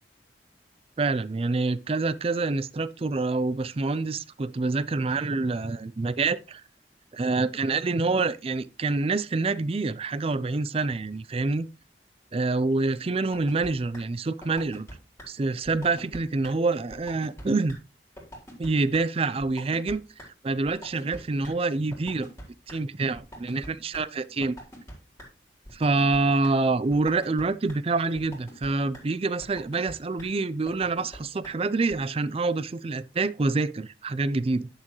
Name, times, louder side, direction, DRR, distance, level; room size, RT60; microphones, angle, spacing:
voice 1, 1.0-6.6 7.1-11.7 12.3-14.9 15.3-17.8 18.6-20.0 20.4-22.3 22.7-24.6 25.7-34.7, right 3 dB, 35° right, 0.4 m, -26 dB
Microbrute clap beat, 13.3-13.7 13.9-14.0 14.4-14.9 15.2-15.3 15.7-16.2 16.4-16.5 16.9-17.4 17.7-17.8 18.2-18.7 18.9-19.0 19.4-19.9 20.2-20.3 20.7-21.2 21.4-21.5 21.9-22.8 23.2-24.0 24.4-24.9 25.2-25.3 25.7-26.2 26.4-26.5 26.9-27.4 27.7-27.8 28.2-28.7 28.9-29.0 29.4-29.9 30.2-30.3 30.7-31.2 31.4-31.5 31.9-32.0, equal, 15° left, 3.5 m, -42 dB
11.0 x 6.6 x 3.1 m
head